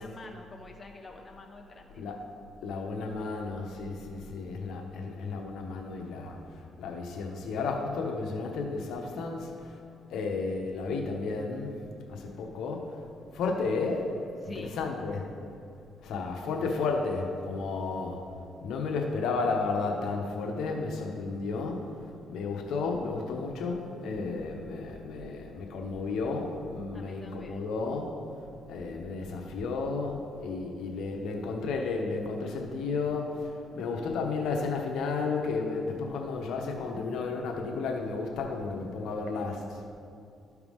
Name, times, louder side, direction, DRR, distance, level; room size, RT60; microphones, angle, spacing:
voice 1, 0.0-2.2 14.4-14.7 26.9-27.6, left 3 dB, 25° left, 1 dB, 1.2 m, -48 dB
voice 2, 2.6-9.8 10.1-13.0 13.3-14.1 14.4-15.3 16.0-18.2 18.6-21.8 22.3-28.1 28.7-39.6, left 4 dB, 80° left, 2 dB, 1.0 m, -33 dB
13.0 x 4.8 x 3.6 m, 2.6 s
cardioid pair, 90°, 0 cm